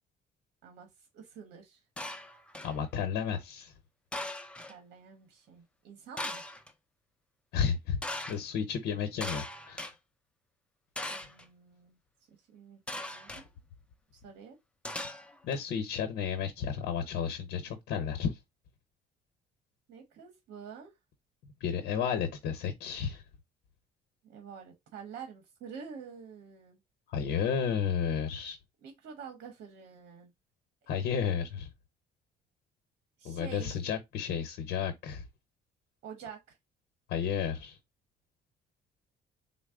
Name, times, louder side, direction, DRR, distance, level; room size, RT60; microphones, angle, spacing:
voice 1, 0.6-1.8 4.7-6.4 11.1-12.0 12.3-13.5 14.1-14.6 19.9-20.9 24.2-26.8 28.8-30.3 33.2-33.7 36.0-36.6, right 6 dB, 75° right, 1.1 m, -48 dB
sound 1, 2.0-2.8 4.1-4.7 6.2-6.7 8.0-8.4 9.2-9.9 11.0-11.4 12.9-13.4 14.8-15.6, left 1 dB, 5° left, 0.5 m, -39 dB
voice 2, 2.6-3.7 7.5-8.0 8.3-9.9 15.4-18.4 21.6-23.2 27.1-28.6 30.9-31.7 33.2-35.2 37.1-37.8, left 7 dB, 75° left, 0.8 m, -32 dB
4.0 x 2.1 x 3.6 m
cardioid pair, 110°, 17 cm